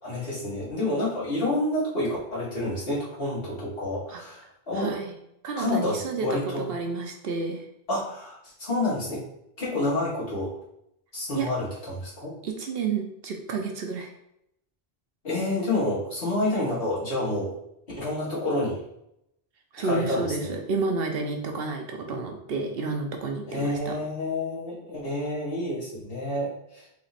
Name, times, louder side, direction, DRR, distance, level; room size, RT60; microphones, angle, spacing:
voice 1, 0.0-4.9 5.6-6.7 7.9-9.2 9.6-10.5 11.1-12.3 15.2-17.5 18.0-18.8 19.8-20.6 23.4-26.9, left 1 dB, 65° left, -8 dB, 2.1 m, -29 dB
voice 2, 4.7-5.1 5.4-7.6 11.3-11.5 12.4-14.1 19.7-24.0, right 4 dB, 70° right, 3 dB, 0.9 m, -30 dB
4.1 x 2.9 x 4.2 m, 0.78 s
omnidirectional pair, 1.0 m